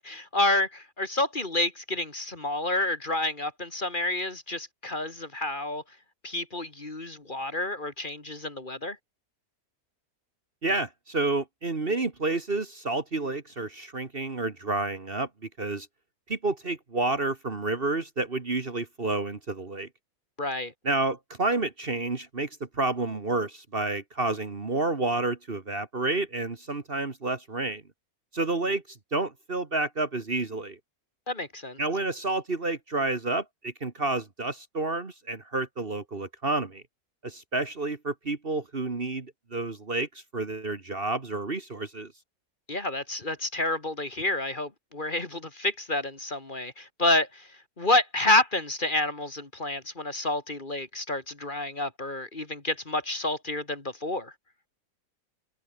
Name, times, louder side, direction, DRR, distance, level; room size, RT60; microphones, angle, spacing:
voice 1, 0.0-5.8 6.2-9.0 20.4-20.7 31.3-31.8 42.7-54.3, left 2 dB, 30° left, 2.5 m, -29 dB
voice 2, 10.6-15.3 15.6-15.9 16.3-19.9 20.8-27.8 28.3-30.8 31.8-36.8 37.2-42.1, right 2 dB, 40° right, 2.0 m, -30 dB
omnidirectional pair, 1.6 m